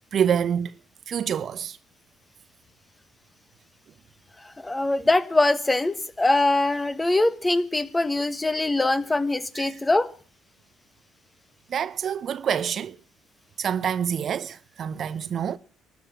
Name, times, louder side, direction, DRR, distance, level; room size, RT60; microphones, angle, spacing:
voice 1, 0.1-0.7 1.1-1.8 9.5-9.8 11.7-13.0 13.6-15.6, right 8 dB, 55° right, 0.7 m, -27 dB
voice 2, 4.6-10.1, left 2 dB, 20° left, 1.5 m, -22 dB
13.0 x 10.5 x 8.6 m
hypercardioid pair, 55°, 0 cm